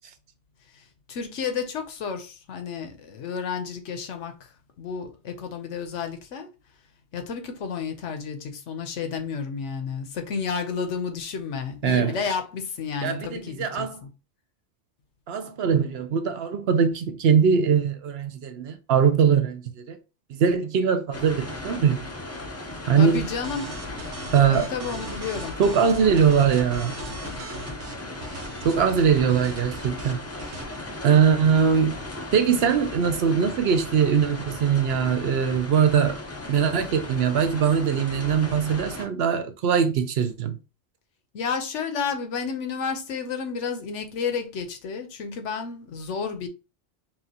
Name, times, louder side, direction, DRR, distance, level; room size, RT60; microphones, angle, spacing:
voice 1, 0.7-6.5 7.1-14.1 23.0-23.8 24.5-25.6 41.3-46.5, left 6 dB, 90° left, 1.1 m, -31 dB
voice 2, 11.8-12.1 13.0-14.0 15.3-20.0 20.3-22.0 22.9-23.3 24.3-24.7 25.6-26.9 28.6-30.2 31.0-32.0 32.3-36.2 36.5-40.6, right 7 dB, 65° right, 0.8 m, -21 dB
sound 1, 21.1-39.1, left 2 dB, 15° left, 0.6 m, -37 dB
sound 2, 23.1-30.6, right 2 dB, 90° right, 1.3 m, -39 dB
5.8 x 2.5 x 2.8 m
omnidirectional pair, 1.2 m